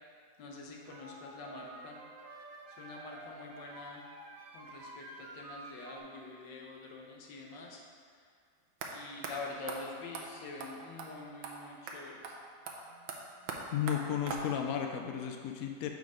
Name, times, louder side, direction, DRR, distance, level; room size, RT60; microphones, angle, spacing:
voice 1, 0.4-2.0 2.7-4.0 4.5-7.8 8.9-12.4, left 3 dB, 85° left, -1 dB, 1.5 m, -46 dB
sound 1, 0.8-6.0, right 2 dB, 60° right, 1.1 m, -50 dB
sound 2, 8.8-8.9 9.2-9.3 9.7-9.8 10.1-10.3 10.6-10.7 11.0-11.1 11.4-11.5 11.9-12.0 12.2-12.3 12.7-14.8, right 4 dB, 90° right, 1.4 m, -41 dB
voice 2, 13.7-15.9, left 9 dB, 70° left, 3 dB, 0.9 m, -34 dB
6.6 x 4.2 x 4.9 m, 2.1 s
omnidirectional pair, 1.9 m